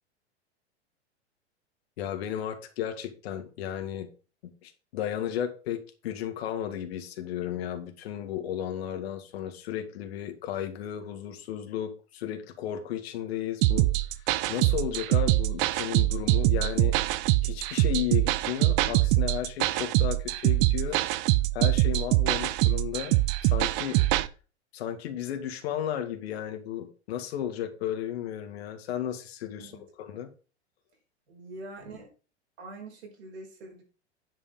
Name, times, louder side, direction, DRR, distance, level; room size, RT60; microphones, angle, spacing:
voice 1, 2.0-4.1 4.4-13.9 14.5-17.0 17.4-21.0 21.5-24.0 24.7-29.7 30.0-30.3, left 10 dB, 60° left, 7 dB, 2.1 m, -34 dB
sound 1, 13.6-24.3, right 18 dB, 40° right, 0.6 m, -24 dB
voice 2, 20.8-21.3 29.6-29.8 31.3-32.1 32.6-33.8, right 2 dB, 65° right, 1 dB, 5.2 m, -44 dB
9.8 x 5.4 x 5.5 m, 0.35 s
hypercardioid pair, 100°, 34 cm